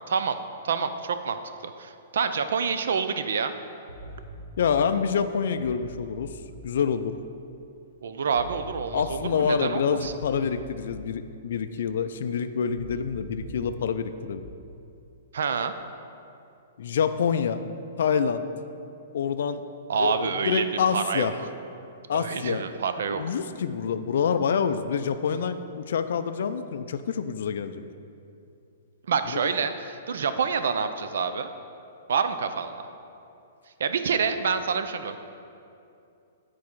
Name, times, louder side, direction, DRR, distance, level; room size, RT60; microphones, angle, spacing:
voice 1, 0.1-0.4 0.6-1.4 1.6-3.5 8.0-10.1 15.3-15.7 19.9-20.6 20.9-21.5 22.1-23.2 29.1-31.5 32.1-32.7 33.8-35.2, right 6 dB, 70° right, 10 dB, 0.4 m, -27 dB
sound 1, 3.9-4.9 5.5-6.7 8.3-9.3 9.9-11.1 12.7-13.6 14.3-14.5, right 1 dB, 90° right, 1.4 m, -43 dB
voice 2, 4.6-6.3 6.6-7.2 8.9-14.4 16.8-17.6 18.0-18.4 19.1-19.6 20.0-21.3 22.1-22.6 23.1-27.8 29.3-29.4, left 6 dB, 60° left, 10 dB, 0.3 m, -27 dB
9.6 x 4.1 x 4.6 m, 2.6 s
hypercardioid pair, 175°, 0 cm